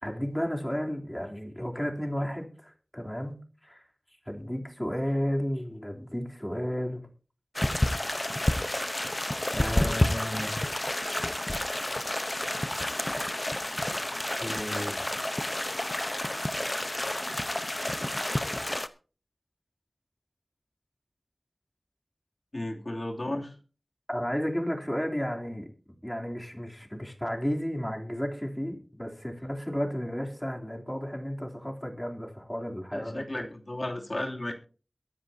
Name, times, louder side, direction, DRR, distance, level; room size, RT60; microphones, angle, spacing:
voice 1, 0.0-3.8 4.3-7.0 9.5-10.5 13.9-14.0 14.4-15.1 24.1-25.7 26.0-33.5, equal, 10° left, 0 dB, 3.4 m, -33 dB
sound 1, 7.5-18.9, left 1 dB, 30° left, 0.9 m, -30 dB
voice 2, 22.5-23.5 32.9-34.5, left 1 dB, 50° left, 1 dB, 3.0 m, -34 dB
22.5 x 10.5 x 2.8 m, 0.37 s
wide cardioid pair, 45°, 0 cm